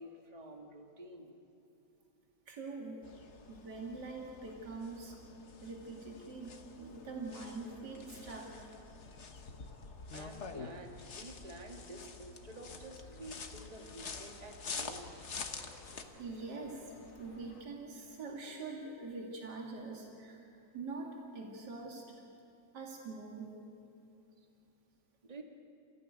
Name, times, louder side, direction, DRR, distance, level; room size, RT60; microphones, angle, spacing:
voice 1, 0.0-1.3 9.1-9.2 10.1-15.1 25.2-25.4, right 1 dB, 20° right, 3 dB, 1.9 m, -50 dB
voice 2, 2.5-3.0 3.3-5.2 5.6-8.5 16.2-20.4 20.7-22.0 22.7-23.5, right 3 dB, 70° right, 0 dB, 3.1 m, -44 dB
sound 1, 3.0-16.0, left 4 dB, 45° left, 1.4 m, -47 dB
sound 2, 12.5-17.6, left 2 dB, 85° left, 2.9 m, -59 dB
28.0 x 16.0 x 9.4 m, 2.8 s
omnidirectional pair, 1.9 m